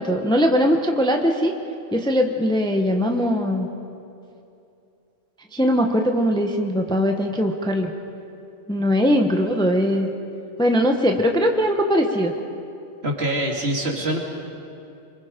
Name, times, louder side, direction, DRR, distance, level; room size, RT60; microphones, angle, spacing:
voice 1, 0.0-1.5 1.9-3.7 5.5-7.9 8.7-10.1 10.6-12.3, equal, 5° left, 3 dB, 1.0 m, -20 dB
voice 2, 13.0-14.2, right 1 dB, 55° right, 0 dB, 2.8 m, -24 dB
26.5 x 24.0 x 5.2 m, 2.7 s
omnidirectional pair, 1.3 m